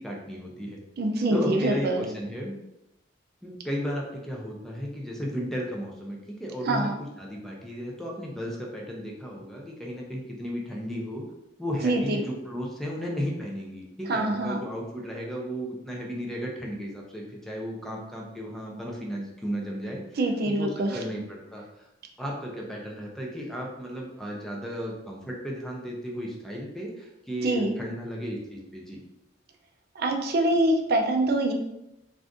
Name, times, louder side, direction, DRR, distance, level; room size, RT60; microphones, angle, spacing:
voice 1, 0.0-0.8 1.3-2.5 3.4-6.8 7.2-11.2 11.6-20.0 20.4-21.9 22.2-29.0, equal, ahead, -2 dB, 0.5 m, -34 dB
voice 2, 1.0-2.1 6.7-6.9 11.8-12.2 14.1-14.6 20.2-21.0 27.4-27.7 30.0-31.5, right 2 dB, 55° right, 3 dB, 0.4 m, -25 dB
2.5 x 2.4 x 3.5 m, 0.88 s
head